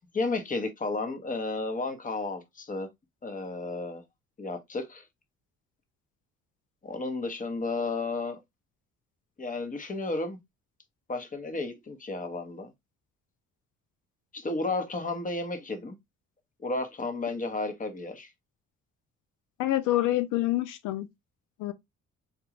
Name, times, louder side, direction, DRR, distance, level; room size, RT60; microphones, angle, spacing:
voice 1, 0.1-2.9 3.2-4.0 4.4-5.0 6.8-8.4 9.4-10.4 11.1-12.7 14.3-16.0 16.6-18.3, left 3 dB, 25° left, 0.9 m, -32 dB
voice 2, 19.6-21.1 21.6-21.7, left 15 dB, 85° left, 0.5 m, -26 dB
3.6 x 2.3 x 2.9 m
cardioid pair, 90°, 30 cm